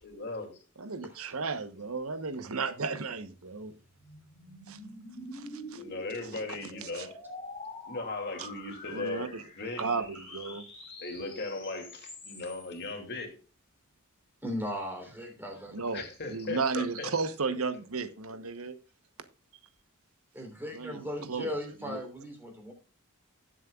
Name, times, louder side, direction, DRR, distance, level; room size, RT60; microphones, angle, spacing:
voice 1, 0.0-0.6 5.8-7.1 7.9-9.9 11.0-13.3 15.9-17.1, left 2 dB, 55° left, 2.6 m, -38 dB
voice 2, 0.8-3.7 4.7-4.8 5.3-5.8 6.1-7.1 8.4-8.5 8.9-9.5 9.8-10.6 15.7-18.8 20.7-21.5 21.8-22.0, right 4 dB, 85° right, 1.1 m, -34 dB
sound 1, 3.1-12.8, left 1 dB, 25° left, 4.3 m, -46 dB
voice 3, 14.4-15.7 20.3-22.7, left 1 dB, 10° right, 3.3 m, -37 dB
17.5 x 7.6 x 2.4 m
head